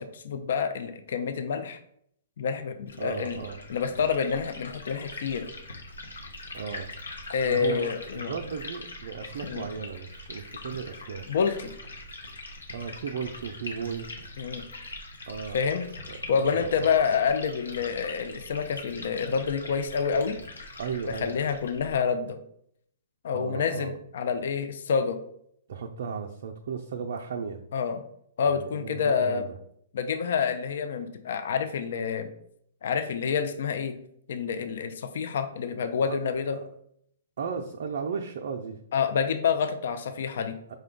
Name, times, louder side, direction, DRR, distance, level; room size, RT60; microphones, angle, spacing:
voice 1, 0.0-1.8 2.4-3.4 3.7-5.5 7.3-8.3 9.4-9.6 11.3-11.7 14.4-14.6 15.5-15.9 16.3-20.4 21.1-22.4 23.2-25.2 27.7-28.0 28.4-29.5 29.9-32.3 32.8-34.0 34.3-36.6 38.9-40.6, left 6 dB, 65° left, 8 dB, 0.4 m, -28 dB
Liquid, 2.9-22.0, left 2 dB, 90° left, 0.9 m, -42 dB
voice 2, 3.0-3.6 6.5-6.9 7.4-11.2 12.7-14.1 15.3-15.6 16.1-16.9 20.8-21.4 23.3-23.9 25.7-27.6 28.5-29.5 36.1-36.2 36.5-36.7 37.4-38.8 40.7-40.8, right 6 dB, 60° right, 2 dB, 0.4 m, -35 dB
5.0 x 2.2 x 3.7 m, 0.70 s
hypercardioid pair, 120°, 0 cm